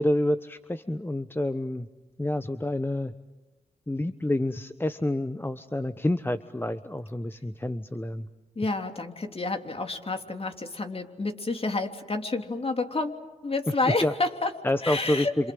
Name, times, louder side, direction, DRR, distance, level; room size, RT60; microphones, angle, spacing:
voice 1, 0.0-1.9 2.2-3.1 3.9-8.3 14.0-14.1 14.6-15.5, left 1 dB, 15° left, 11 dB, 1.0 m, -28 dB
voice 2, 8.5-14.5 14.8-15.5, left 3 dB, 35° left, 5 dB, 3.2 m, -29 dB
28.0 x 27.0 x 7.8 m, 1.1 s
supercardioid pair, 50°, 16 cm